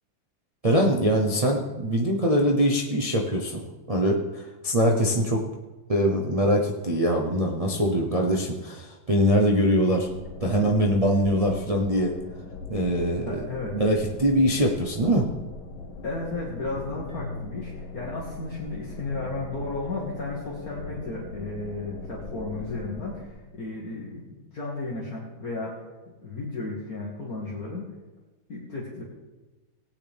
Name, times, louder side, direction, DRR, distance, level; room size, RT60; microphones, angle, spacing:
voice 1, 0.6-3.6 3.9-5.4 5.9-10.1 10.4-12.1 12.7-13.4 13.7-15.3, equal, 50° right, -2 dB, 0.4 m, -23 dB
sound 1, 10.0-23.3, left 3 dB, 80° left, 1.9 m, -41 dB
voice 2, 13.2-13.8 16.0-25.8 26.2-27.9 28.5-29.0, left 3 dB, 45° left, -4 dB, 2.0 m, -34 dB
Keyboard (musical), 17.1-19.3, left 2 dB, 15° right, 2.7 m, -42 dB
17.5 x 8.9 x 3.5 m, 1.2 s
omnidirectional pair, 2.2 m